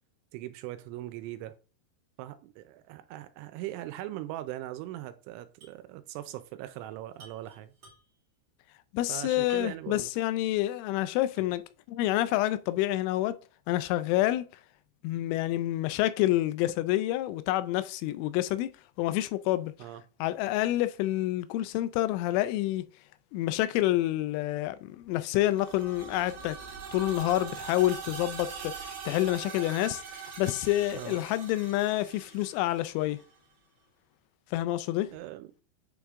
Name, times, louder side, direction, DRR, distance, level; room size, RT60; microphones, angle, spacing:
voice 1, 0.3-1.5 2.2-7.7 9.1-10.1 19.8-20.0 30.9-31.2 35.1-35.5, right 14 dB, 85° right, 3.0 m, -40 dB
sound 1, 5.6-5.9 6.1-6.2 7.1-8.3 9.5-10.0 10.5-10.6 11.4-11.7, right 2 dB, 40° right, 2.3 m, -54 dB
voice 2, 8.9-11.6 11.9-13.4 13.7-14.5 15.0-18.7 19.0-19.7 20.2-22.8 23.3-26.6 26.9-28.7 29.1-33.2 34.5-35.1, left 15 dB, 90° left, 3.0 m, -28 dB
sound 2, 25.4-33.2, right 6 dB, 65° right, 2.8 m, -42 dB
9.3 x 3.5 x 3.6 m
omnidirectional pair, 5.4 m